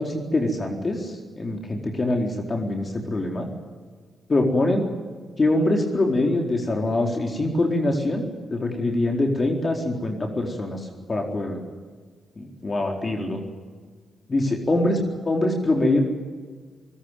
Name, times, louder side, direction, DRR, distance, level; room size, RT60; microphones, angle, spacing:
voice 1, 0.0-3.5 4.3-4.9 5.4-8.2 8.5-11.6 12.4-13.4 14.3-16.0, left 2 dB, 40° left, 2 dB, 4.3 m, -24 dB
21.0 x 20.0 x 9.3 m, 1.5 s
hypercardioid pair, 40°, 0 cm